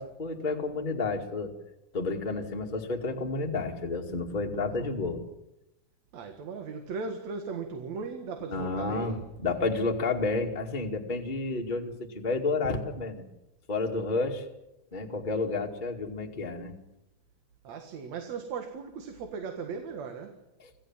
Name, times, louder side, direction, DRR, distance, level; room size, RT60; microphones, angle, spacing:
voice 1, 0.0-1.5 1.9-5.2 8.5-13.2 13.7-14.5 14.9-16.7 20.6-20.7, left 3 dB, 20° left, 1 dB, 1.9 m, -31 dB
voice 2, 6.1-9.2 17.6-20.3, right 5 dB, 65° right, 5 dB, 2.9 m, -37 dB
27.0 x 16.5 x 7.4 m, 0.93 s
omnidirectional pair, 3.5 m